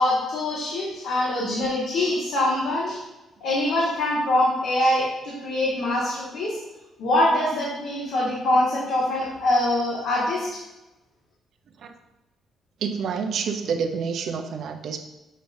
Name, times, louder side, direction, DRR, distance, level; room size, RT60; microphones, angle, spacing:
voice 1, 0.0-3.0 3.4-6.6 7.0-10.6, left 1 dB, 85° left, -7 dB, 1.7 m, -24 dB
voice 2, 12.8-15.0, right 6 dB, 70° right, 6 dB, 0.7 m, -28 dB
7.6 x 5.2 x 2.6 m, 1.0 s
cardioid pair, 90°, 0 cm